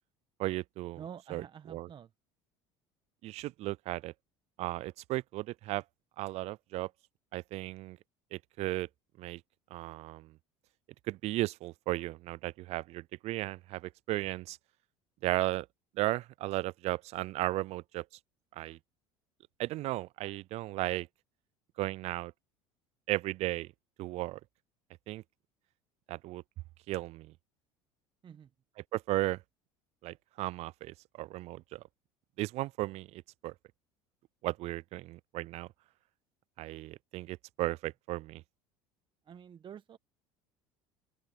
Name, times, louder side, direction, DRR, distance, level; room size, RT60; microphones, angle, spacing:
voice 1, 0.4-1.0 1.3-1.4 1.7-1.9 3.2-4.1 4.6-5.8 6.2-6.9 7.3-8.0 8.3-8.9 9.2-9.4 9.7-10.3 11.1-14.6 15.2-15.7 16.0-18.0 18.6-18.8 19.6-21.1 21.8-22.3 23.1-23.7 24.0-24.4 25.1-25.2 26.1-26.4 26.9-27.3 28.9-29.4 30.0-31.8 32.4-33.5 34.4-35.7 36.6-38.4, right 17 dB, 55° right, 0.4 m, -35 dB
voice 2, 1.0-2.1 28.2-28.5 39.2-40.0, right 8 dB, 40° right, 1.2 m, -48 dB
open air
hypercardioid pair, 80°, 13 cm